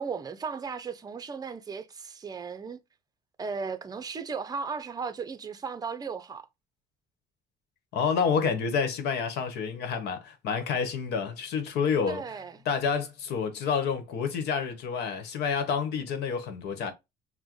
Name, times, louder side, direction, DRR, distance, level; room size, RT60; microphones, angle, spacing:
voice 1, 0.0-2.8 3.4-6.5 12.1-12.6, right 5 dB, 20° right, 0.5 m, -36 dB
voice 2, 7.9-12.2 12.6-16.9, left 6 dB, 80° left, 1.1 m, -28 dB
6.0 x 2.1 x 3.0 m
cardioid pair, 110°, 17 cm